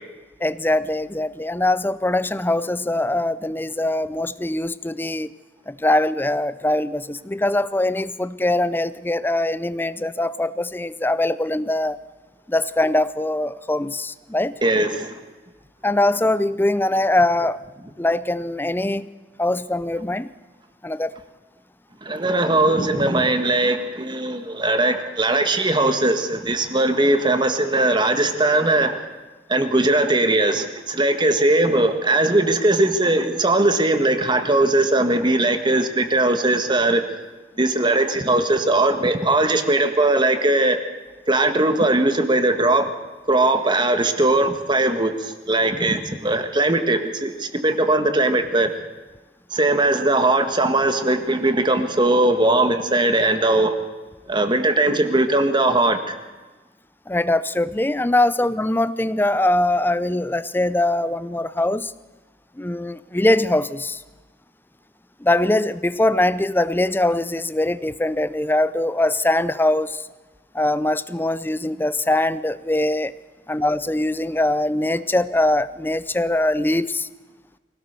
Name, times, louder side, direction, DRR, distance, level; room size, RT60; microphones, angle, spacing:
voice 1, 0.4-5.3 5.7-12.0 12.5-14.5 15.8-17.6 18.0-19.1 19.4-20.3 20.8-21.1 57.1-61.9 62.6-64.0 65.2-70.0 70.5-73.1 73.5-77.1, left 1 dB, 10° left, 16 dB, 0.6 m, -22 dB
voice 2, 14.6-15.1 22.0-29.0 29.5-37.0 37.6-40.8 41.3-42.9 43.3-48.7 49.5-53.8 54.3-56.2, right 2 dB, 25° right, 8 dB, 1.7 m, -19 dB
24.0 x 17.5 x 6.8 m, 1.2 s
head